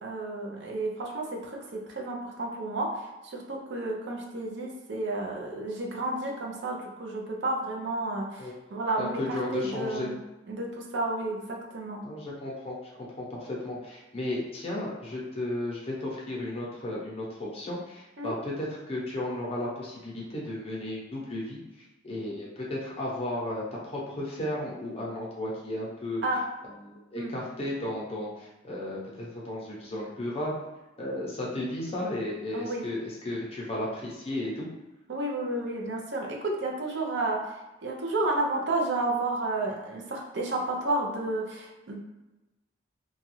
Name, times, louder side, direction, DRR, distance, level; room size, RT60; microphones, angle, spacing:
voice 1, 0.0-10.2 10.5-12.0 18.2-18.3 26.2-26.4 27.2-27.3 32.5-32.9 35.1-42.0, right 2 dB, 60° right, 0 dB, 0.5 m, -31 dB
voice 2, 9.0-10.1 12.0-21.6 22.0-26.2 26.8-30.6 31.0-34.7, left 1 dB, 30° left, -4 dB, 0.7 m, -34 dB
2.9 x 2.3 x 3.0 m, 1.0 s
head